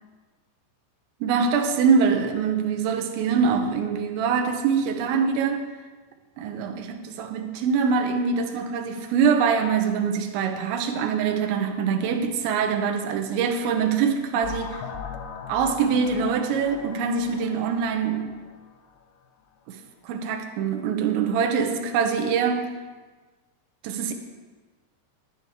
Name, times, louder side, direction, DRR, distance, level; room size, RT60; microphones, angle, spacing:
voice 1, 1.2-5.7 6.4-14.8 15.5-18.4 19.7-22.7 23.8-24.1, right 6 dB, 85° right, 5 dB, 3.1 m, -24 dB
sound 1, 14.3-19.0, left 6 dB, 80° left, 3.1 m, -39 dB
11.0 x 9.9 x 3.5 m, 1.3 s
omnidirectional pair, 5.2 m